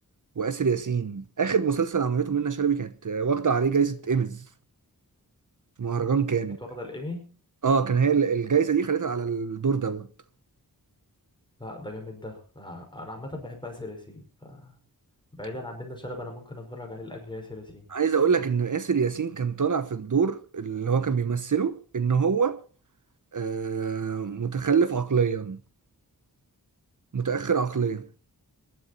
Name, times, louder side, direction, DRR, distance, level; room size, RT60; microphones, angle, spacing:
voice 1, 0.4-4.4 5.8-6.6 7.6-10.1 17.9-22.6 23.3-25.6 27.1-28.0, right 6 dB, 55° right, 1.0 m, -25 dB
voice 2, 6.6-7.4 11.6-14.8 15.3-17.9, left 1 dB, 10° left, 5.4 m, -39 dB
22.0 x 11.5 x 4.1 m
wide cardioid pair, 85°, 37 cm